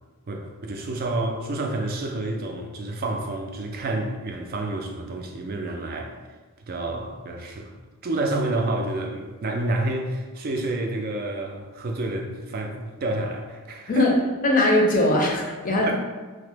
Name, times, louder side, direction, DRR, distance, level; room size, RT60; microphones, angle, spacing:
voice 1, 0.3-6.2 6.7-7.7 8.0-14.1 15.8-15.9, right 2 dB, 45° right, 3 dB, 0.3 m, -29 dB
voice 2, 14.4-15.9, left 1 dB, 35° left, 0 dB, 0.5 m, -20 dB
2.8 x 2.1 x 3.2 m, 1.3 s
head